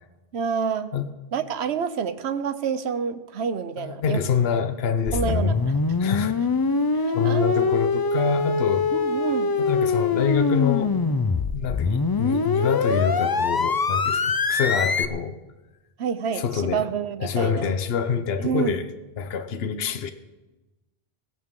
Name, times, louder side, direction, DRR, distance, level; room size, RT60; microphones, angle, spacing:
voice 1, 0.3-0.9 1.3-4.2 5.1-5.8 6.9-7.8 8.9-9.5 16.0-17.7 18.4-18.8, right 7 dB, 90° right, 11 dB, 1.1 m, -28 dB
voice 2, 3.8-5.6 6.0-6.3 7.1-8.9 9.6-11.0 11.5-15.4 16.3-16.9 17.2-18.9 19.2-20.1, left 7 dB, 70° left, 10 dB, 1.1 m, -26 dB
sound 1, 5.1-15.1, left 4 dB, 35° left, 0.3 m, -23 dB
16.5 x 16.5 x 3.7 m, 1.1 s
omnidirectional pair, 1.1 m